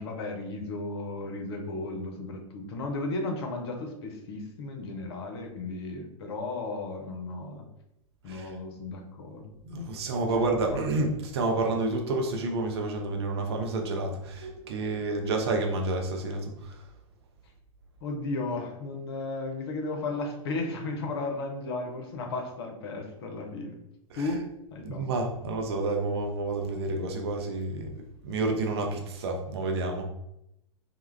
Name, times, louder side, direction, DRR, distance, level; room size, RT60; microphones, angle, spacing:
voice 1, 0.0-7.7 8.2-9.5 10.3-10.5 10.7-10.8 15.2-15.4 18.0-23.8 24.2-24.4 24.7-25.1, left 2 dB, 50° left, 3 dB, 0.5 m, -34 dB
voice 2, 9.6-16.8 24.1-24.3 24.8-30.1, right 2 dB, 50° right, 3 dB, 0.5 m, -29 dB
2.2 x 2.0 x 3.1 m, 0.83 s
figure-of-eight pair, 100°, 17 cm